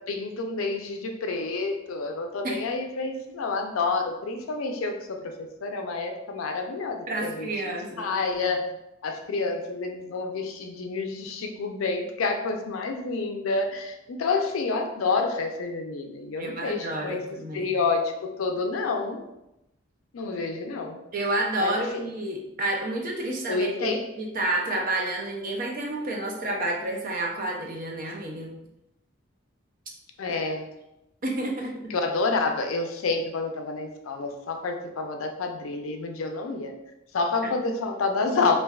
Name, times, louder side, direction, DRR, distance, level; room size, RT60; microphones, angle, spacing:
voice 1, 0.0-8.7 9.0-17.2 17.5-18.1 18.4-19.2 20.1-21.0 21.6-21.8 23.5-24.0 30.2-30.7 31.9-36.7 37.1-38.5, left 3 dB, 80° left, 4 dB, 0.4 m, -28 dB
voice 2, 7.1-8.2 16.4-17.7 21.1-28.5 31.2-31.7, right 2 dB, 40° right, 0 dB, 0.5 m, -30 dB
3.3 x 2.6 x 2.3 m, 0.88 s
head